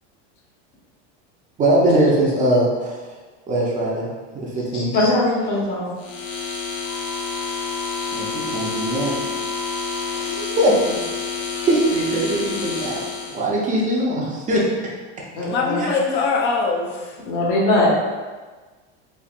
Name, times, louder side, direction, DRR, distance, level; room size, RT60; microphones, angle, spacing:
voice 1, 1.6-3.0 3.5-4.1 4.3-4.9 8.1-9.1 10.1-10.8 11.7-14.7 15.8-15.9, right 1 dB, 20° right, -3 dB, 0.6 m, -21 dB
voice 2, 4.7-5.8 15.4-15.8 17.2-17.9, left 2 dB, 55° left, -5 dB, 1.3 m, -20 dB
sound 1, 6.0-13.4, left 5 dB, 90° left, 0.8 m, -29 dB
Wind instrument woodwind instrument, 6.8-10.4, right 1 dB, 80° right, 0.9 m, -35 dB
voice 3, 10.3-11.0 15.4-17.2, left 4 dB, 30° left, -1 dB, 0.5 m, -24 dB
4.2 x 2.7 x 2.5 m, 1.3 s
supercardioid pair, 130°, 35 cm